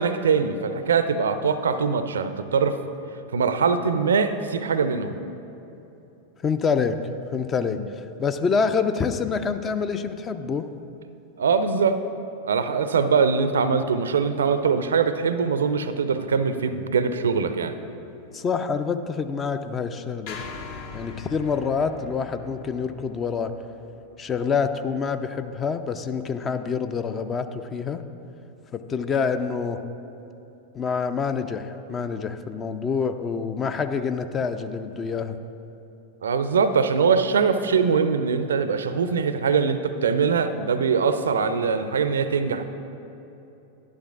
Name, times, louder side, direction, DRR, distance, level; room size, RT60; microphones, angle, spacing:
voice 1, 0.0-2.8 3.3-5.2 7.7-7.8 11.4-12.0 12.4-17.8 36.2-42.6, right 5 dB, 65° right, 11 dB, 0.4 m, -22 dB
voice 2, 6.4-7.0 7.3-10.7 18.3-20.4 20.9-23.5 24.2-28.0 28.7-29.8 30.7-35.4, left 5 dB, 25° left, 10 dB, 0.4 m, -26 dB
sound 1, 20.3-24.6, left 5 dB, 45° left, 0.8 m, -41 dB
12.0 x 11.0 x 2.4 m, 3.0 s
figure-of-eight pair, 90°, 0 cm